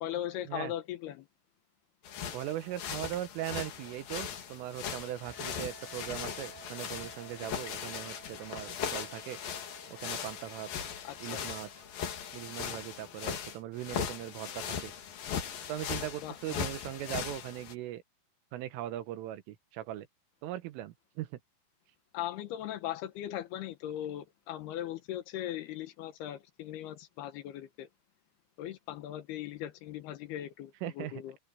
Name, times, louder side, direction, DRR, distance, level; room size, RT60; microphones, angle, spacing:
voice 1, 0.0-1.3 11.0-11.4 16.2-16.6 22.1-27.9 28.6-31.4, left 12 dB, 70° left, 2.6 m, -39 dB
sound 1, 2.0-17.7, left 8 dB, 55° left, 3.4 m, -39 dB
voice 2, 2.3-9.4 10.0-10.7 11.2-11.7 12.3-14.9 15.7-18.0 18.5-20.1 20.4-21.4 30.8-31.1, right 13 dB, 85° right, 3.9 m, -39 dB
sound 2, 5.2-13.4, right 6 dB, 5° right, 2.0 m, -56 dB
omnidirectional pair, 5.6 m